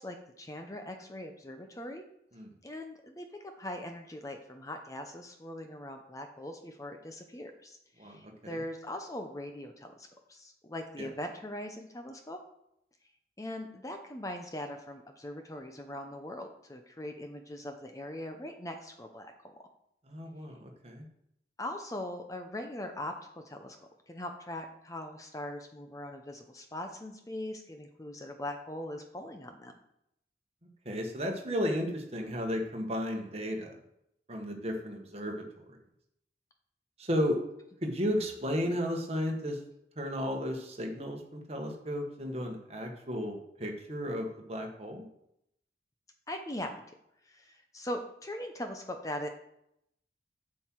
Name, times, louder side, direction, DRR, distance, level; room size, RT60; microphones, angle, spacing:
voice 1, 0.0-2.0 2.6-12.4 13.4-19.6 21.6-23.8 24.1-29.7 46.3-46.7 47.2-49.3, left 1 dB, 20° left, 5 dB, 0.7 m, -41 dB
voice 2, 8.0-8.6 11.0-11.1 20.1-21.1 30.8-33.8 34.3-35.8 37.0-37.4 37.8-39.6 40.0-45.0, equal, 35° right, 2 dB, 1.5 m, -34 dB
7.7 x 7.7 x 4.6 m, 0.77 s
head